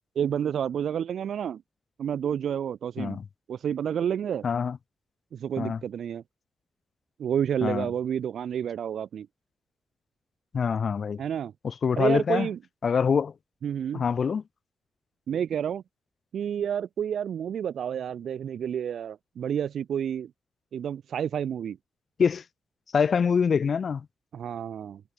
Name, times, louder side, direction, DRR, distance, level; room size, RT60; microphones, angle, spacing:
voice 1, 0.1-1.6 2.0-3.2 3.5-4.4 5.3-6.2 7.2-9.3 11.2-11.5 12.0-12.6 13.6-14.0 15.3-15.8 16.3-20.3 20.7-21.8 24.3-25.0, right 8 dB, 80° right, 4.5 m, -29 dB
voice 2, 4.4-4.8 5.6-5.8 7.6-7.9 10.5-11.2 11.6-12.5 12.8-13.3 13.9-14.4 22.2-22.4 22.9-24.1, left 6 dB, 50° left, 4.1 m, -25 dB
wide cardioid pair, 130°, 0 cm